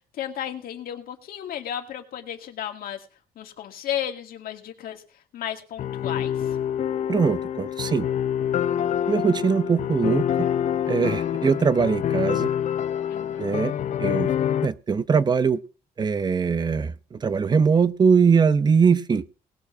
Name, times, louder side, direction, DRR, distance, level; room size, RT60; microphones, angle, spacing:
voice 1, 0.2-3.0 3.4-5.0 5.3-6.6 13.1-13.6, left 10 dB, 70° left, 4 dB, 2.1 m, -33 dB
sound 1, 5.8-14.7, left 9 dB, 50° left, 0.7 m, -26 dB
voice 2, 7.1-8.1 9.1-10.3 10.9-12.5 13.4-14.3 14.6-15.6 16.0-19.2, right 6 dB, 25° right, 15 dB, 0.8 m, -21 dB
19.0 x 6.5 x 6.0 m, 0.36 s
cardioid pair, 150°, 15 cm